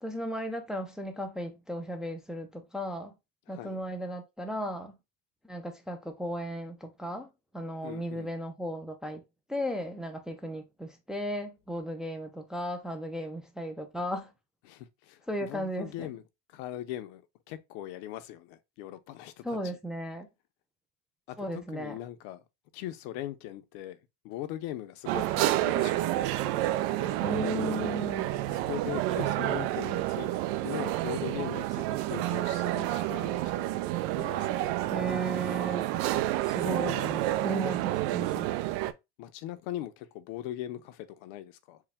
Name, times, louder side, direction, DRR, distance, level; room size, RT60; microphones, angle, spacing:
voice 1, 0.0-3.1 3.5-4.9 5.5-7.3 7.5-9.2 9.5-14.3 15.3-16.1 19.4-20.3 21.4-21.9 27.2-28.3 34.9-35.8 36.5-37.2 37.4-38.5, equal, ahead, 0.4 m, -35 dB
voice 2, 3.5-3.8 7.8-8.4 14.6-16.2 16.5-19.8 21.3-22.4 22.7-26.3 26.9-27.2 28.5-30.3 30.6-33.8 34.1-34.7 36.6-37.4 39.2-41.8, left 13 dB, 70° left, 0.6 m, -40 dB
sound 1, 25.1-38.9, right 15 dB, 70° right, 0.5 m, -29 dB
4.6 x 2.2 x 3.5 m
cardioid pair, 145°, 31 cm